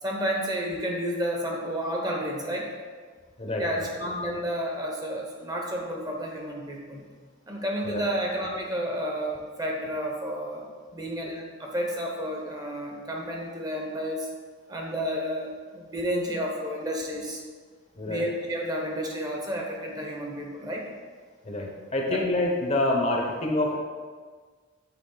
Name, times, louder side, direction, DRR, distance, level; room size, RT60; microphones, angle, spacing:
voice 1, 0.0-2.7 3.6-7.0 7.5-10.6 10.9-14.3 14.7-17.4 18.1-20.9 22.1-22.2, equal, 20° right, 0 dB, 0.8 m, -31 dB
voice 2, 3.4-3.9 7.8-8.0 18.0-18.2 21.4-23.8, left 2 dB, 30° left, 0 dB, 0.8 m, -27 dB
7.9 x 3.7 x 3.8 m, 1.5 s
head